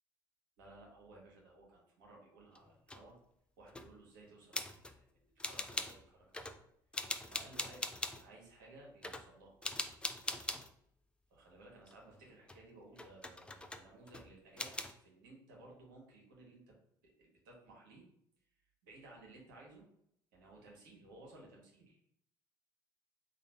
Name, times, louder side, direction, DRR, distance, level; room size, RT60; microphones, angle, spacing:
voice 1, 0.6-3.2 3.6-6.5 7.2-9.6 11.3-16.7 17.2-18.0 18.8-19.8 20.3-22.0, right 2 dB, 75° right, -2 dB, 1.3 m, -58 dB
sound 1, 2.5-3.1 3.7-3.9 4.5-5.0 5.4-6.0 6.3-6.6 6.9-8.3 9.0-9.3 9.6-10.7 11.9-12.6 13.0-14.3 14.6-14.9, left 2 dB, 10° left, 0.4 m, -42 dB
3.2 x 2.5 x 4.3 m, 0.71 s
figure-of-eight pair, 55°, 11 cm